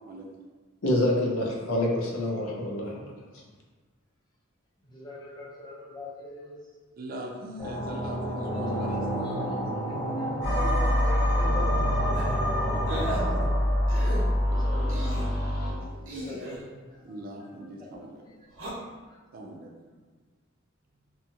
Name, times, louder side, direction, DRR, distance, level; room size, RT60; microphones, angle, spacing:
voice 1, 0.8-3.0, left 1 dB, 85° left, -1 dB, 0.6 m, -26 dB
voice 2, 4.8-6.7 7.6-8.0 9.2-12.8 13.4-13.5 14.5-15.3 15.6-18.3 19.1-19.2, left 2 dB, 20° left, -6 dB, 0.6 m, -43 dB
voice 3, 7.0-9.8 12.7-13.5 14.0-14.1 14.5-15.0 15.6-16.1 17.0-18.2 19.3-19.7, right 1 dB, 45° right, 1 dB, 0.3 m, -40 dB
sound 1, 7.6-13.5, right 1 dB, ahead, 0.9 m, -32 dB
sound 2, 10.4-15.7, equal, 55° left, 0.9 m, -25 dB
sound 3, 12.1-12.4 12.9-13.2 13.9-14.2 14.9-15.3 16.1-16.6 18.5-18.7, right 1 dB, 80° right, 0.7 m, -37 dB
2.7 x 2.3 x 2.7 m, 1.3 s
head